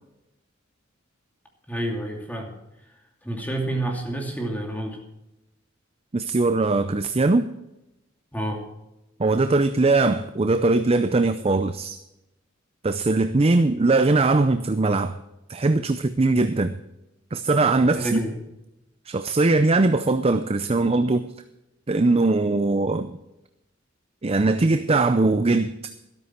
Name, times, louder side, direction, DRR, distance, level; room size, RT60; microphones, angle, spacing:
voice 1, 1.7-2.5 3.2-5.0 8.3-8.6 18.0-18.3, right 1 dB, 10° left, 1 dB, 2.6 m, -28 dB
voice 2, 6.1-7.5 9.2-12.0 12.8-15.2 15.5-16.7 17.3-18.2 19.1-21.3 21.9-23.2 24.2-25.9, right 3 dB, 30° right, 10 dB, 0.5 m, -21 dB
13.0 x 12.5 x 4.5 m, 0.93 s
head